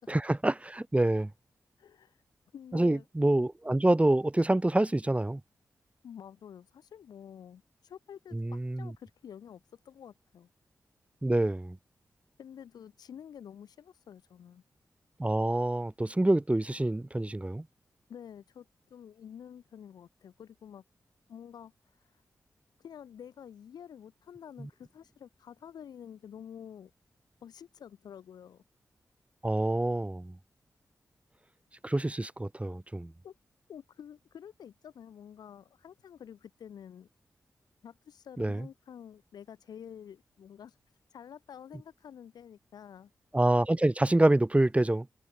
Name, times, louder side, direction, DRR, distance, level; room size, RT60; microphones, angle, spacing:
voice 1, 0.1-1.3 2.7-5.4 8.3-8.9 11.2-11.8 15.2-17.6 24.6-24.7 29.4-30.3 31.8-33.1 38.4-38.7 43.3-45.1, right 1 dB, 20° right, 1.5 m, -26 dB
voice 2, 1.8-2.2 2.5-3.0 6.0-10.5 12.4-14.6 18.1-20.8 21.3-21.7 22.8-26.9 27.4-28.6 33.2-33.4 33.7-37.1 37.8-40.8 41.1-43.1, left 8 dB, 90° left, 3.2 m, -49 dB
cardioid pair, 45°, 7 cm